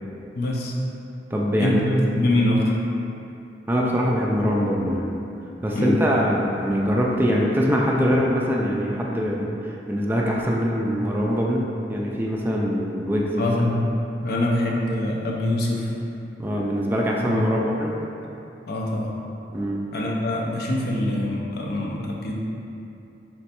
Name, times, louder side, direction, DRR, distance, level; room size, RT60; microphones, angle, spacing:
voice 1, 0.3-0.7 1.6-1.8 2.2-2.8 5.7-6.0 13.4-13.8 14.2-16.0 17.3-17.4 18.7-19.1 19.9-22.3, left 1 dB, 60° left, -2 dB, 0.6 m, -24 dB
voice 2, 1.3-2.1 3.7-5.2 5.6-13.5 16.4-17.9 19.5-19.8, equal, 10° right, -3 dB, 0.3 m, -23 dB
3.1 x 3.1 x 4.3 m, 2.8 s
head